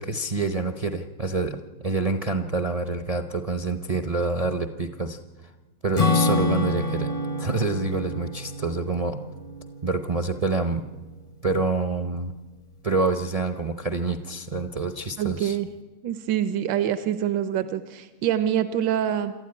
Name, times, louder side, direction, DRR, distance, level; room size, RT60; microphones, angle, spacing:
voice 1, 0.0-5.2 5.8-7.1 7.4-9.2 9.8-10.8 11.4-12.3 12.8-15.6, right 3 dB, 45° right, 6 dB, 0.4 m, -27 dB
Acoustic guitar / Strum, 5.9-10.7, left 2 dB, 35° left, 0.5 m, -27 dB
voice 2, 15.2-15.7 16.0-19.3, right 10 dB, 85° right, 11 dB, 1.6 m, -25 dB
27.5 x 12.5 x 9.8 m, 1.3 s
omnidirectional pair, 2.0 m